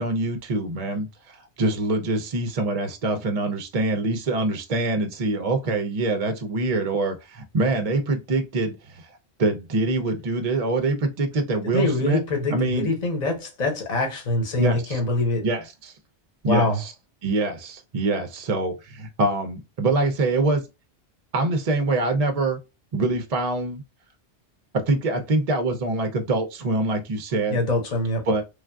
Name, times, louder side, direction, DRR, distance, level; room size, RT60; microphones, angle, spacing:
voice 1, 0.0-9.1 9.4-12.2 12.5-12.9 14.6-15.0 15.4-15.9 16.4-16.9 17.2-20.6 21.3-22.6 22.9-23.8 24.7-27.6 28.3-28.4, right 2 dB, 50° right, 0.5 m, -24 dB
voice 2, 11.6-15.5 16.4-16.8 27.5-28.3, left 2 dB, 40° left, 1.1 m, -24 dB
3.3 x 2.4 x 2.3 m
omnidirectional pair, 1.1 m